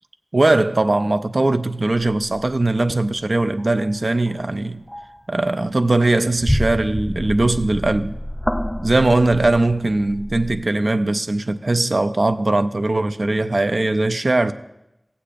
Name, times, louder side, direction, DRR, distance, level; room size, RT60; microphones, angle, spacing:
voice 1, 0.3-4.8 5.3-8.2 8.8-14.5, right 2 dB, 65° right, 0.4 m, -20 dB
sound 1, 2.0-2.5 3.6-3.7 4.2-4.5 4.9-5.2 5.6-10.6, equal, 10° left, 0.4 m, -28 dB
15.0 x 8.3 x 2.5 m
wide cardioid pair, 50°, 0 cm